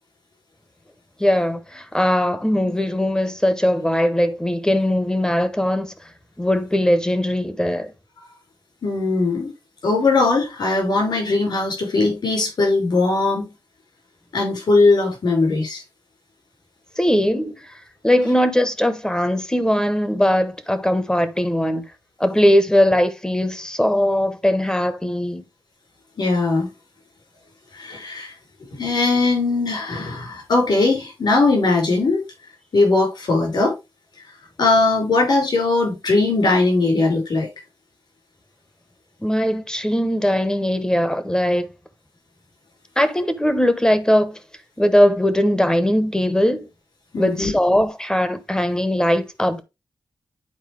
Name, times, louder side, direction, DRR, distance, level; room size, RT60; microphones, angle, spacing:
voice 1, 1.2-5.9 6.4-7.9 17.0-17.7 18.0-21.8 22.2-25.4 39.2-41.7 43.0-44.4 44.8-46.7 47.2-49.6, equal, 10° left, 0.9 m, -20 dB
voice 2, 8.8-9.5 9.8-13.5 14.3-15.8 26.2-26.7 27.7-28.3 28.8-32.2 32.7-33.7 34.6-37.5 47.1-47.5, left 3 dB, 70° left, 4.9 m, -19 dB
9.6 x 4.4 x 3.2 m
wide cardioid pair, 95°, 8 cm